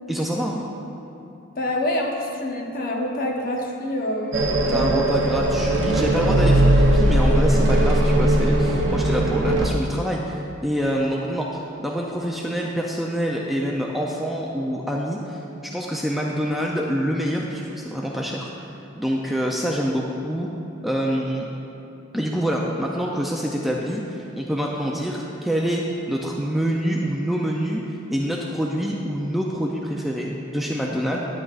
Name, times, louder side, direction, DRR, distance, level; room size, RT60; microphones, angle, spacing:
voice 1, 0.1-0.6 4.7-18.5 18.9-20.5 20.8-21.4 22.1-31.3, equal, ahead, -2 dB, 0.4 m, -26 dB
voice 2, 1.5-5.0, left 1 dB, 45° left, -1 dB, 1.0 m, -26 dB
sound 1, 4.3-9.7, right 1 dB, 60° right, 0.7 m, -19 dB
10.0 x 8.6 x 2.4 m, 2.9 s
head